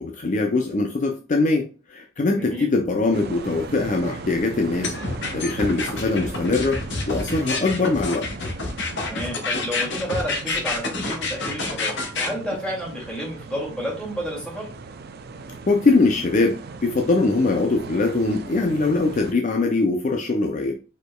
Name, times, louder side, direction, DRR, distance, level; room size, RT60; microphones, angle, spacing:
voice 1, 0.0-5.0 5.3-8.3 15.7-20.7, left 3 dB, 40° left, 3 dB, 0.5 m, -22 dB
voice 2, 2.4-2.7 9.0-14.7, equal, 5° left, -4 dB, 2.2 m, -31 dB
sound 1, 3.1-19.3, right 4 dB, 55° right, 0.5 m, -38 dB
sound 2, 4.8-12.3, left 3 dB, 65° left, 1.0 m, -28 dB
5.0 x 4.3 x 2.2 m, 0.34 s
head